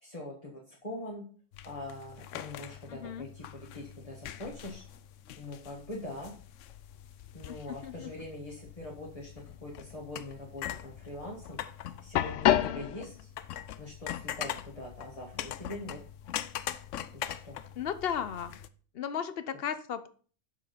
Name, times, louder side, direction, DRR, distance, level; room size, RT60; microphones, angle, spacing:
voice 1, 0.0-1.3 1.6-4.8 5.4-6.3 7.3-9.3 9.6-11.6 12.0-13.3 13.8-16.0 17.1-17.6, left 1 dB, 30° left, -2 dB, 1.6 m, -43 dB
sound 1, 1.5-18.7, left 12 dB, 90° left, 0.9 m, -37 dB
voice 2, 2.9-3.3 7.4-8.1 12.5-12.8 17.8-18.6 18.9-20.1, left 8 dB, 55° left, 12 dB, 0.9 m, -36 dB
7.3 x 6.2 x 5.1 m, 0.42 s
omnidirectional pair, 1.2 m